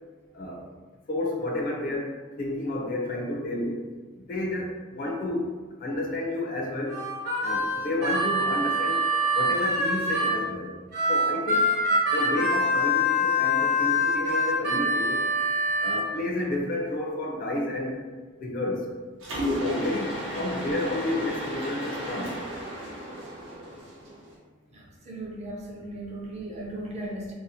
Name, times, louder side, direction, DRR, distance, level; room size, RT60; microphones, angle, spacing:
voice 1, 1.1-2.1 2.4-3.8 4.1-5.5 5.8-7.0 7.4-9.0 9.3-10.8 11.1-11.7 12.1-15.3 15.8-18.0 18.4-18.9 19.6-22.4, left 1 dB, 50° left, -1 dB, 0.5 m, -31 dB
Harmonica, 6.9-10.4 10.9-16.0, left 1 dB, 50° right, 0.9 m, -25 dB
Mechanisms, 19.2-24.3, equal, 85° right, 0.8 m, -33 dB
voice 2, 24.7-27.3, right 1 dB, 35° right, -2 dB, 0.5 m, -37 dB
2.6 x 2.0 x 2.7 m, 1.3 s
head